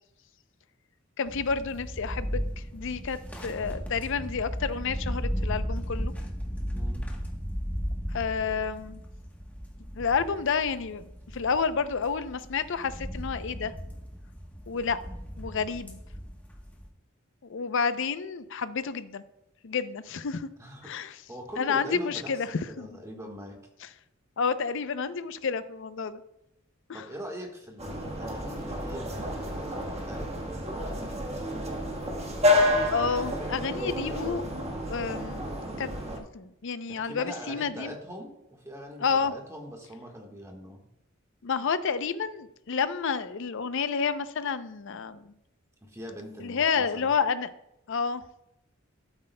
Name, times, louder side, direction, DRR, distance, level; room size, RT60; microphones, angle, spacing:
voice 1, 1.2-6.1 8.1-9.0 10.0-13.7 14.7-15.0 15.4-16.0 17.5-19.2 19.6-20.5 20.8-21.1 21.6-22.9 24.4-26.2 26.9-27.0 32.9-34.4 34.9-35.9 36.2-37.9 39.0-39.3 41.4-45.3 46.4-47.5 47.9-48.2, left 5 dB, 65° left, 13 dB, 0.5 m, -30 dB
sound 1, 1.2-16.9, equal, 5° left, 1.0 m, -36 dB
voice 2, 6.7-7.1 20.6-20.9 21.3-23.6 26.9-31.2 36.9-40.9 45.8-47.2, equal, 15° right, 1 dB, 1.4 m, -42 dB
sound 2, 27.8-36.2, left 1 dB, 30° right, 1.3 m, -29 dB
12.5 x 8.1 x 2.2 m, 0.85 s
head